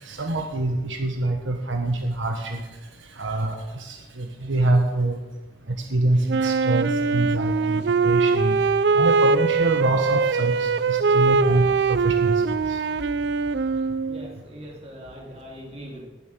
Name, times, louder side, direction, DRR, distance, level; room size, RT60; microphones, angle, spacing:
voice 1, 0.0-2.6 3.2-5.2 5.9-8.6 8.9-12.3 12.7-12.8, right 2 dB, 80° right, 4 dB, 1.3 m, -25 dB
Wind instrument woodwind instrument, 6.3-14.3, right 4 dB, 60° right, 0.4 m, -22 dB
voice 2, 14.1-16.0, equal, 30° right, -2 dB, 3.1 m, -41 dB
19.0 x 7.2 x 6.2 m, 1.1 s
head